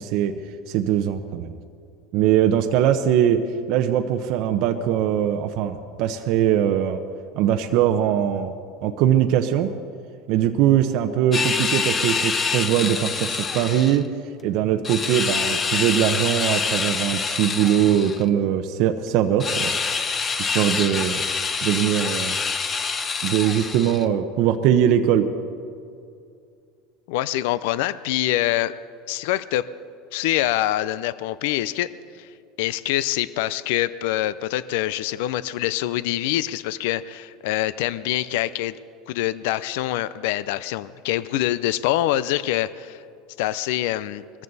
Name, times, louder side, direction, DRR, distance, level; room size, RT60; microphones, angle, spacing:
voice 1, 0.0-1.5 2.1-3.4 3.7-7.0 7.4-8.5 8.8-9.7 10.3-14.1 14.4-19.8 20.5-21.2 21.6-22.4 23.2-25.3, right 10 dB, 60° right, 6 dB, 0.8 m, -21 dB
sound 1, 11.3-14.0 14.8-18.2 19.4-24.0, left 5 dB, 25° left, 1.0 m, -26 dB
voice 2, 27.1-28.7 29.1-29.6 30.1-31.9 32.2-32.3 32.6-38.8 39.1-43.0 43.4-44.2, left 14 dB, 75° left, 17 dB, 0.5 m, -25 dB
21.5 x 14.5 x 4.1 m, 2.3 s
supercardioid pair, 115°, 0 cm